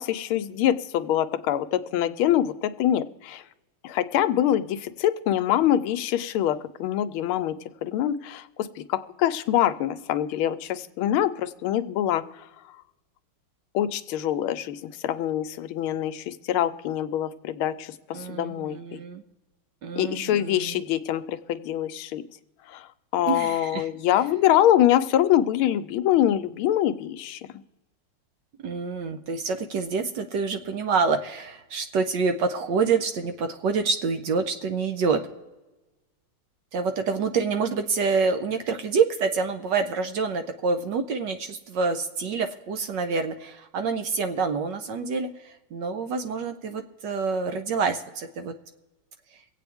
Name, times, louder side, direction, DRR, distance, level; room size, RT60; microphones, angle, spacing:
voice 1, 0.0-3.4 3.8-7.5 7.8-12.2 13.7-19.0 20.0-22.2 22.7-22.9 23.1-27.4, left 11 dB, 80° left, 12 dB, 1.4 m, -24 dB
voice 2, 18.1-19.2 19.8-20.8 23.3-23.9 28.6-35.2 36.7-48.5, right 5 dB, 65° right, 8 dB, 1.2 m, -27 dB
24.0 x 8.4 x 3.5 m, 1.1 s
omnidirectional pair, 2.4 m